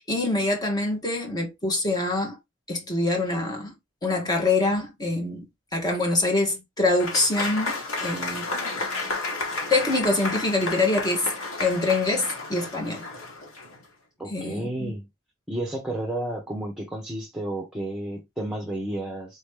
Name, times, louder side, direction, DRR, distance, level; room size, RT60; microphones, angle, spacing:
voice 1, 0.0-2.4 2.7-3.7 4.0-5.5 5.7-8.5 9.7-11.3 11.6-13.1 14.3-14.9, left 2 dB, 20° left, 1.3 m, -25 dB
Applause / Crowd, 7.0-13.8, left 3 dB, 85° left, 1.4 m, -32 dB
voice 2, 14.2-15.1 15.5-19.4, right 1 dB, 5° right, 1.0 m, -31 dB
4.5 x 3.0 x 3.3 m
head